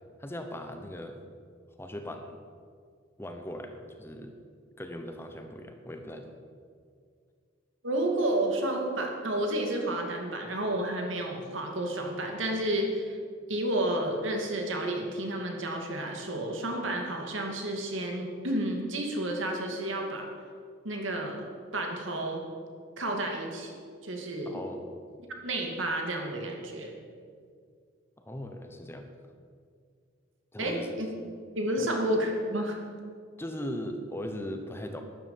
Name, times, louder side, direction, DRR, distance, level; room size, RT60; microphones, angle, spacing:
voice 1, 0.2-1.2 1.8-2.4 3.2-4.3 4.8-6.3 24.5-24.9 28.2-29.1 30.5-31.0 31.8-31.9 33.4-35.0, left 1 dB, 10° left, 5 dB, 1.0 m, -39 dB
voice 2, 7.8-13.2 13.5-20.3 20.8-22.4 23.0-24.6 25.4-27.0 30.6-31.1 31.5-32.8, right 1 dB, 80° right, 2 dB, 2.4 m, -31 dB
12.5 x 10.5 x 7.3 m, 2.1 s
head